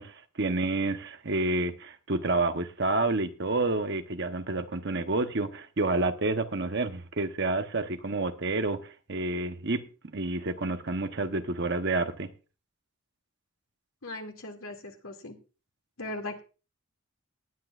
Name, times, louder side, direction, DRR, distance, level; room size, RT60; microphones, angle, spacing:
voice 1, 0.0-9.8 10.1-12.3, right 2 dB, 50° right, 1.0 m, -29 dB
voice 2, 14.0-15.4 16.0-16.4, left 2 dB, 75° left, 2.4 m, -38 dB
19.0 x 10.0 x 2.5 m
head